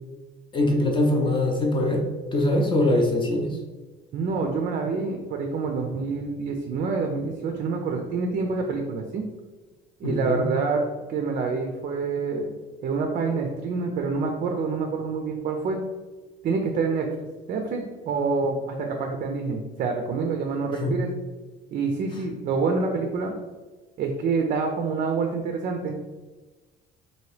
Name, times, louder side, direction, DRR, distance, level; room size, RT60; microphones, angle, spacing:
voice 1, 0.5-2.0 2.3-3.6 10.0-10.5 20.8-20.9, left 1 dB, 25° left, 2 dB, 0.5 m, -22 dB
voice 2, 4.1-9.2 10.0-10.8 11.1-12.5 12.8-15.8 16.4-17.1 17.5-21.1 21.7-23.3 24.0-26.2, right 4 dB, 45° right, 3 dB, 0.4 m, -27 dB
2.8 x 2.6 x 3.2 m, 1.3 s
cardioid pair, 130°, 20 cm